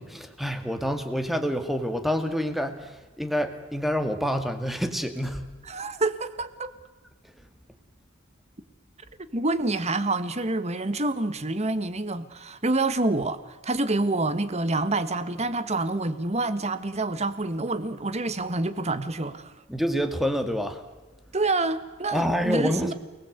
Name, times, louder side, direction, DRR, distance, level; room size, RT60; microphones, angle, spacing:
voice 1, 0.0-5.4 19.7-20.8 22.1-22.9, equal, ahead, 2.2 m, -27 dB
voice 2, 5.7-6.7 9.3-19.5 21.3-22.9, right 2 dB, 30° right, 1.6 m, -27 dB
29.0 x 20.0 x 8.1 m
head